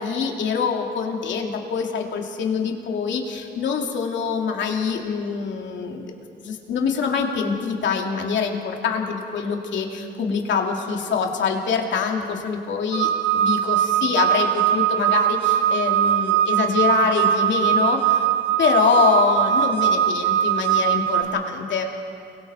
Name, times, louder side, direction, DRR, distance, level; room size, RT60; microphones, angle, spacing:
voice 1, 0.0-6.0 6.4-18.3 18.6-21.8, left 6 dB, 70° left, 1 dB, 2.7 m, -24 dB
sound 1, 12.9-21.2, right 10 dB, 65° right, 1.7 m, -21 dB
29.5 x 22.5 x 4.4 m, 2.5 s
cardioid pair, 90°, 20 cm